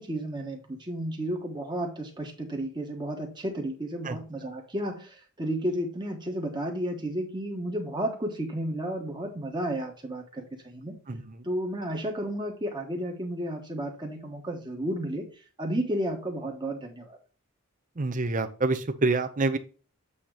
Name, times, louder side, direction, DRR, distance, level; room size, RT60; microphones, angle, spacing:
voice 1, 0.0-11.0 11.4-15.2 15.6-17.2, right 1 dB, 20° right, 1.2 m, -32 dB
voice 2, 18.0-19.6, right 3 dB, 35° right, 0.7 m, -26 dB
8.4 x 2.9 x 4.8 m
head